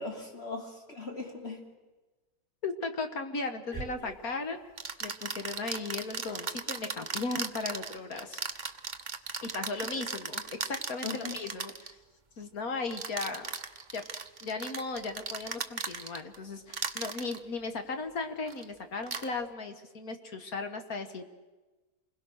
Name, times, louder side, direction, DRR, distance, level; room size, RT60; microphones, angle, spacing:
voice 1, 0.0-1.6 3.7-3.8 11.0-11.4, left 3 dB, 30° left, 1 dB, 3.3 m, -39 dB
voice 2, 2.6-4.6 5.0-8.4 9.4-12.0 12.4-13.5 13.9-14.0 14.4-21.3, left 3 dB, 50° left, 7 dB, 1.8 m, -36 dB
sound 1, 3.7-3.9 4.8-11.9 12.9-16.4 16.7-17.4 18.5-18.6 19.0-19.3, right 5 dB, 35° right, 0.7 m, -37 dB
28.5 x 21.5 x 6.4 m, 1.2 s
omnidirectional pair, 2.1 m